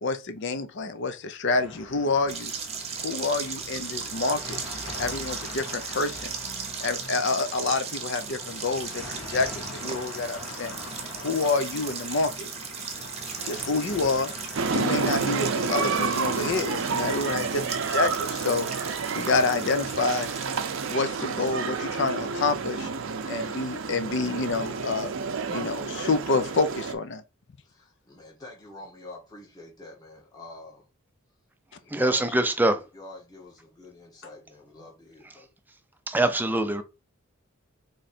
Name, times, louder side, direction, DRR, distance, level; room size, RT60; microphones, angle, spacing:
voice 1, 0.0-2.5 3.0-4.6 5.0-6.2 6.8-9.0 9.3-10.7 11.2-12.5 13.4-14.3 14.7-18.7 19.2-20.3 20.9-22.9 23.3-25.1 25.5-27.2, left 3 dB, 60° left, 0.6 m, -27 dB
sound 1, 1.5-15.3, left 2 dB, 90° left, 1.9 m, -42 dB
sound 2, 2.3-20.9, right 6 dB, 30° right, 0.8 m, -37 dB
sound 3, 14.5-26.9, right 5 dB, 65° right, 0.5 m, -30 dB
voice 2, 23.2-23.6 27.6-30.8 31.8-35.5, left 2 dB, 20° left, 1.3 m, -46 dB
voice 3, 31.9-32.8 36.1-36.8, right 1 dB, 10° right, 0.5 m, -23 dB
3.7 x 3.2 x 4.2 m
head